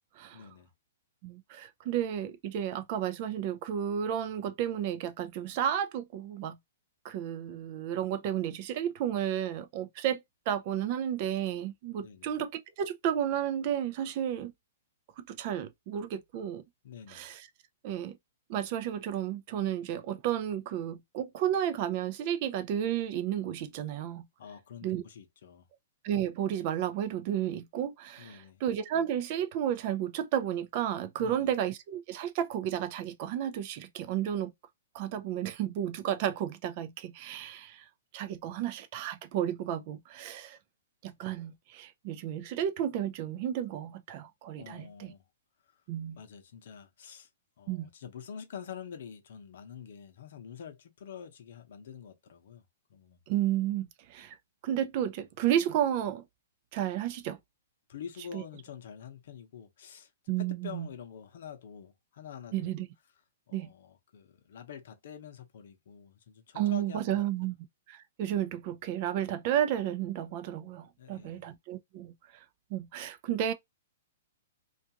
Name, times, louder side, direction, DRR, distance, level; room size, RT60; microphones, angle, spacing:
voice 1, 0.3-0.7 12.0-12.4 16.8-17.3 24.4-25.7 28.2-28.6 31.2-31.5 44.6-45.2 45.7-45.8 46.2-47.3 47.6-52.6 52.9-53.4 57.9-62.7 63.5-67.5 71.0-71.5, left 8 dB, 65° left, 0.7 m, -47 dB
voice 2, 1.2-6.6 7.0-10.2 10.5-14.5 15.2-16.6 17.1-17.4 17.8-18.2 18.5-24.3 24.8-25.0 26.0-34.5 34.9-37.9 38.1-40.6 41.0-45.1 45.9-46.2 47.7-47.9 53.3-54.3 54.6-56.2 56.7-57.4 58.3-58.4 60.3-60.9 62.5-62.9 63.5-63.7 66.5-67.5 67.9-72.1 72.7-73.5, right 10 dB, 40° right, 0.4 m, -32 dB
2.5 x 2.4 x 2.8 m
hypercardioid pair, 145°, 0 cm